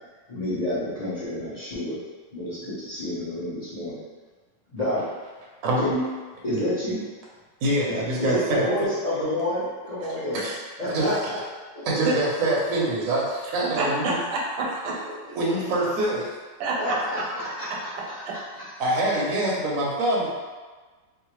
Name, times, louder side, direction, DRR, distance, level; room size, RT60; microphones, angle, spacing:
voice 1, 0.3-2.0 2.3-4.0 4.7-5.0 5.8-6.0 6.4-7.0 7.8-10.4 10.8-11.4 16.8-18.6, left 1 dB, 50° left, -12 dB, 0.5 m, -29 dB
voice 2, 7.6-8.7 10.3-10.6 10.9-11.1 11.8-14.2 15.3-16.3 18.8-20.3, right 1 dB, 60° right, -5 dB, 0.9 m, -24 dB
voice 3, 13.7-15.0 16.6-17.0 17.5-17.6 18.2-18.3, right 2 dB, 80° right, -3 dB, 1.5 m, -27 dB
3.7 x 2.1 x 3.0 m, 1.4 s
omnidirectional pair, 2.2 m